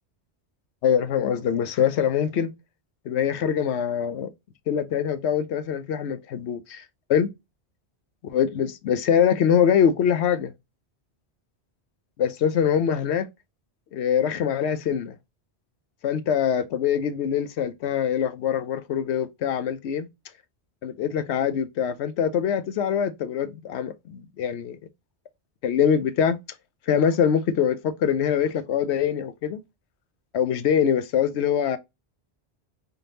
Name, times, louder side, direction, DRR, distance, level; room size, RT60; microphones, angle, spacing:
voice 1, 0.8-2.5 3.1-4.3 4.7-6.8 7.1-7.3 8.3-10.5 12.2-13.3 13.9-15.1 16.0-20.1 20.8-24.8 25.6-26.4 26.9-29.6 30.3-31.8, left 8 dB, 80° left, 0.9 m, -23 dB
4.0 x 3.4 x 2.6 m
omnidirectional pair, 1.1 m